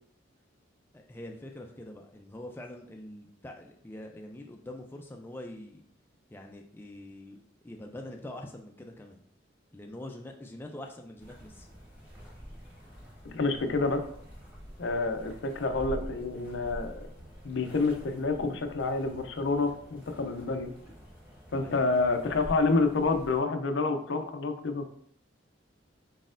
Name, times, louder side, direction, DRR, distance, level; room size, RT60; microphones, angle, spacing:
voice 1, 0.9-5.8 6.3-7.4 7.6-9.2 9.7-11.7 21.5-21.8, left 1 dB, 10° left, 2 dB, 0.3 m, -44 dB
sound 1, 11.2-23.4, equal, 10° right, 1.3 m, -46 dB
voice 2, 13.3-14.0 14.8-17.1 17.4-20.7 21.5-24.9, left 3 dB, 65° left, 7 dB, 0.5 m, -28 dB
4.2 x 4.1 x 2.5 m, 0.63 s
head